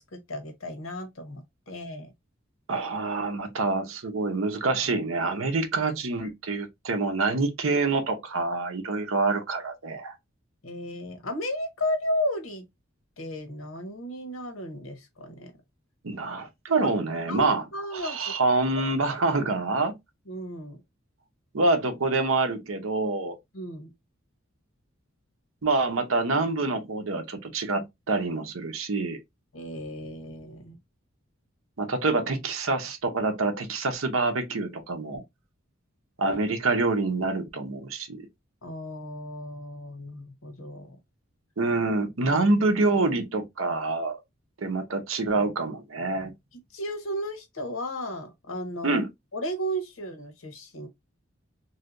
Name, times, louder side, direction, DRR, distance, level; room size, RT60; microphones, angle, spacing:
voice 1, 0.0-2.1 10.6-12.6 13.2-15.5 16.8-16.9 17.3-18.3 18.8-18.9 20.3-20.8 23.5-23.9 29.5-30.8 36.3-36.4 37.3-37.4 38.6-41.0 42.3-42.4 46.7-49.0 49.3-50.9, equal, 85° left, 0.9 m, -34 dB
voice 2, 2.7-10.2 16.0-17.6 17.9-19.9 21.5-23.4 25.6-29.2 31.8-35.2 36.2-38.3 41.6-44.2 44.6-46.3 48.8-49.1, right 3 dB, 75° right, 0.8 m, -26 dB
3.2 x 2.7 x 2.5 m
head